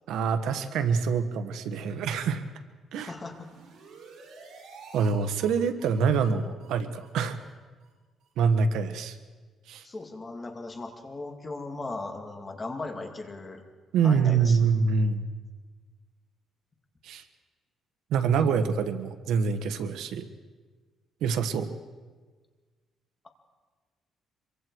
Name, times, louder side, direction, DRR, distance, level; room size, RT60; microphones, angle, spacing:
voice 1, 0.1-2.4 2.9-3.1 4.9-7.4 8.4-9.2 9.7-9.8 13.9-15.3 17.0-17.2 18.1-20.3 21.2-21.7, right 5 dB, 80° right, 9 dB, 1.4 m, -25 dB
voice 2, 3.0-3.5 9.8-13.6 14.0-14.6 18.4-18.7, left 3 dB, 20° left, 4 dB, 2.1 m, -38 dB
sound 1, 3.1-5.1 5.4-5.5 5.8-5.9 6.2-6.3 6.6-6.7 7.0-7.1 7.4-7.5 7.8-7.9 8.2-8.3, right 5 dB, 65° right, 6.5 m, -49 dB
25.0 x 23.5 x 4.7 m, 1.4 s
cardioid pair, 165°, 0 cm